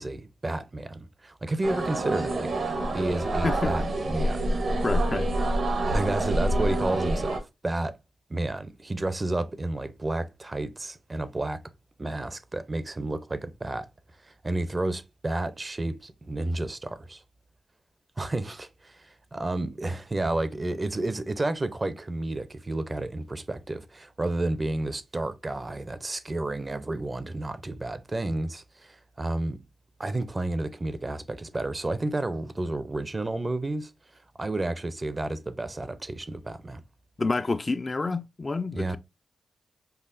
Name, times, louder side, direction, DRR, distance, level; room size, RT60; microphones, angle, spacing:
voice 1, 0.0-2.5 2.9-4.5 5.9-8.0 8.3-11.6 12.0-13.9 14.2-17.2 18.2-29.6 30.0-33.9 34.4-36.8 38.7-39.0, right 2 dB, 35° right, 0.5 m, -31 dB
sound 1, 1.6-7.4, right 1 dB, 70° right, 1.0 m, -27 dB
voice 2, 3.4-3.9 4.7-5.3 37.2-39.0, left 3 dB, 40° left, 0.3 m, -29 dB
5.5 x 2.1 x 2.4 m
cardioid pair, 50°, 0 cm